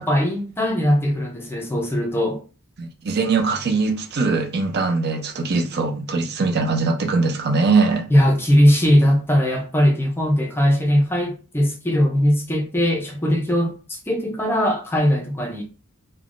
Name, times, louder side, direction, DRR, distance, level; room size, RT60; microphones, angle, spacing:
voice 1, 0.0-2.4 8.1-15.6, equal, 10° left, 0.5 m, -19 dB
voice 2, 2.8-8.1, right 4 dB, 50° right, 0.5 m, -21 dB
3.3 x 2.1 x 2.4 m
head